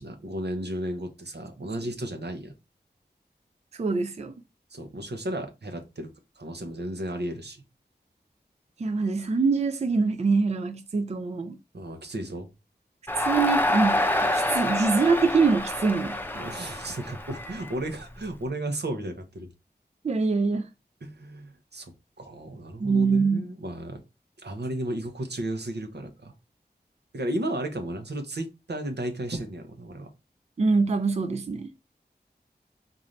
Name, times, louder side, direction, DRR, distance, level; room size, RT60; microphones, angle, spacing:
voice 1, 0.0-2.5 4.7-6.1 6.4-7.6 11.7-12.5 16.3-19.5 21.0-21.9 22.2-24.0 24.4-26.3 27.1-30.1, right 1 dB, 75° right, 0.8 m, -34 dB
voice 2, 3.8-4.3 8.8-11.6 13.2-16.2 20.0-20.6 22.8-23.5 30.6-31.7, right 4 dB, 40° right, 0.4 m, -24 dB
Crowd, 13.1-18.3, left 1 dB, 10° left, 0.6 m, -27 dB
3.9 x 2.7 x 3.2 m
wide cardioid pair, 45°, 18 cm